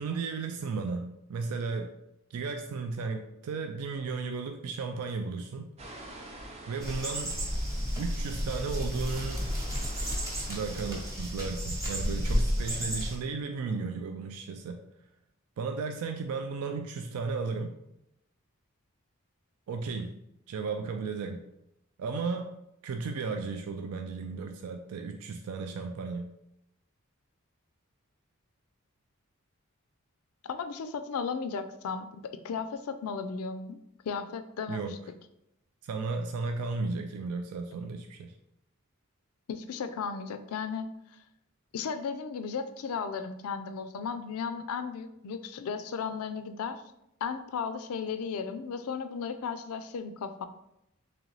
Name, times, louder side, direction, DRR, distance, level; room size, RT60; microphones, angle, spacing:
voice 1, 0.0-1.9 2.3-5.7 6.7-7.4 8.0-9.4 10.5-14.8 15.6-17.8 19.7-20.2 20.5-21.4 22.0-22.6 22.8-26.3 34.7-34.9 35.8-38.3, right 4 dB, 90° right, 5 dB, 0.3 m, -34 dB
sound 1, 5.8-11.1, right 1 dB, 30° right, 0.5 m, -47 dB
sound 2, 6.8-13.2, equal, 15° right, 1.0 m, -32 dB
voice 2, 30.4-33.8 34.0-35.0 39.5-40.9 41.7-46.8 47.2-50.5, left 5 dB, 85° left, 10 dB, 0.4 m, -35 dB
3.8 x 3.0 x 3.1 m, 0.83 s
head